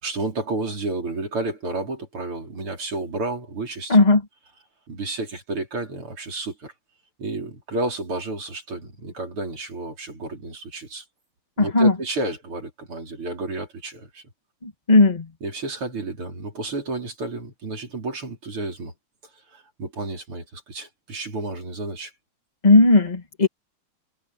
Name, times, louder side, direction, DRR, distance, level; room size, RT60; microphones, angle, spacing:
voice 1, 0.0-4.0 4.9-6.7 7.2-11.0 11.6-14.2 15.4-18.9 19.5-22.1, right 2 dB, 85° right, 5.6 m, -31 dB
voice 2, 3.9-4.2 11.6-11.9 14.6-15.3 22.6-23.5, left 2 dB, 20° left, 1.9 m, -16 dB
omnidirectional pair, 2.4 m